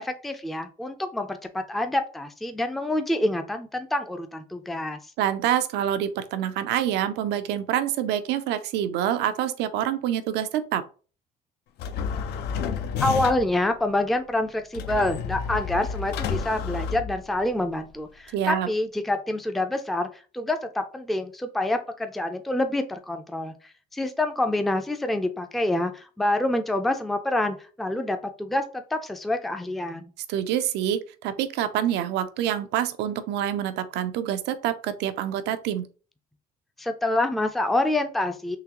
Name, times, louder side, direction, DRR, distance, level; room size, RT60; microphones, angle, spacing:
voice 1, 0.0-5.0 13.0-23.5 23.9-30.1 36.8-38.6, left 1 dB, ahead, 7 dB, 0.4 m, -27 dB
voice 2, 5.2-10.8 18.3-18.7 30.3-35.9, right 10 dB, 85° right, 10 dB, 0.5 m, -26 dB
sound 1, 11.8-13.6 14.7-17.6, left 6 dB, 75° left, 0.5 m, -30 dB
3.8 x 2.8 x 2.9 m, 0.37 s
cardioid pair, 110°, 17 cm